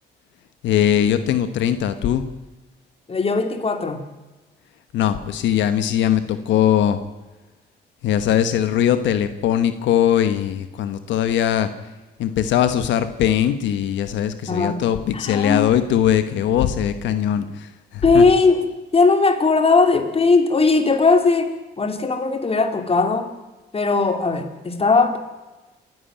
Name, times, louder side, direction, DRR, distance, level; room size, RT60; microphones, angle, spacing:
voice 1, 0.6-2.2 4.9-7.0 8.0-11.7 12.2-18.2, left 10 dB, 90° left, 11 dB, 1.2 m, -20 dB
voice 2, 3.1-4.0 14.5-14.8 15.1-15.7 18.0-21.5 21.8-23.3 23.7-25.2, left 4 dB, 30° left, 7 dB, 2.7 m, -18 dB
27.5 x 11.0 x 9.0 m, 1.1 s
cardioid pair, 95°, 18 cm